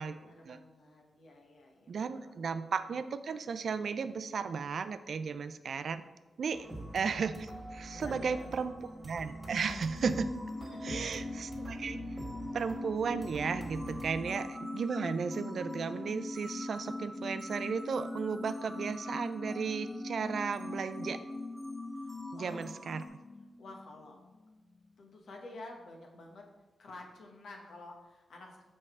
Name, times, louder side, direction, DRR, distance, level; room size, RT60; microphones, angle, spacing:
voice 1, 0.0-1.9 2.2-2.3 6.5-6.7 7.9-8.5 10.7-11.2 22.3-22.6 23.6-24.2 25.0-26.4 26.8-28.6, left 2 dB, 75° left, 1 dB, 1.0 m, -50 dB
voice 2, 1.9-6.0 6.4-6.7 6.9-8.7 9.0-10.3 10.8-12.0 12.5-21.2 22.3-23.0, right 5 dB, 65° right, 12 dB, 0.3 m, -35 dB
sound 1, 6.5-23.1, right 1 dB, 25° right, 1.6 m, -47 dB
sound 2, 9.4-24.5 24.8-24.9, left 2 dB, 35° left, 0.3 m, -42 dB
5.4 x 5.3 x 3.5 m, 1.1 s
cardioid pair, 65°, 0 cm